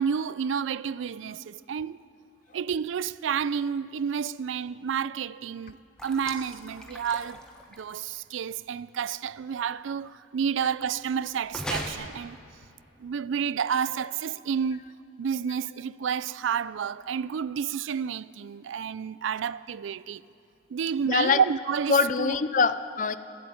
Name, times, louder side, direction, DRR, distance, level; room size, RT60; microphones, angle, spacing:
voice 1, 0.0-2.0 2.5-5.8 6.0-7.4 7.8-12.4 13.0-14.8 15.2-20.2 20.7-22.4, right 7 dB, 80° right, 0.4 m, -30 dB
sound 1, 6.0-8.2 11.5-11.9, left 1 dB, 5° left, 1.1 m, -38 dB
voice 2, 21.1-21.4 21.9-23.2, left 5 dB, 40° left, 0.4 m, -23 dB
20.5 x 7.9 x 8.7 m
head